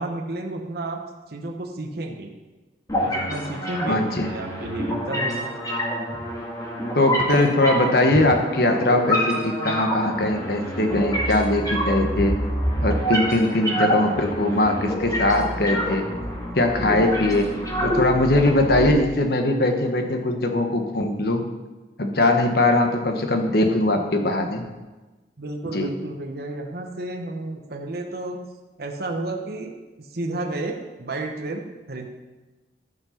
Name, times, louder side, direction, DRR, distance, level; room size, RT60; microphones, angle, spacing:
voice 1, 0.0-2.3 3.0-5.5 25.4-28.5 28.8-29.7 30.1-32.1, right 2 dB, 60° right, 2 dB, 1.0 m, -31 dB
sound 1, 2.9-18.9, equal, 20° left, 2.4 m, -27 dB
voice 2, 3.9-4.3 7.0-12.3 12.8-16.1 16.5-17.5 17.8-21.4 22.0-24.6 25.7-25.9, left 2 dB, 60° left, 4 dB, 1.3 m, -21 dB
13.5 x 5.6 x 5.9 m, 1.2 s
head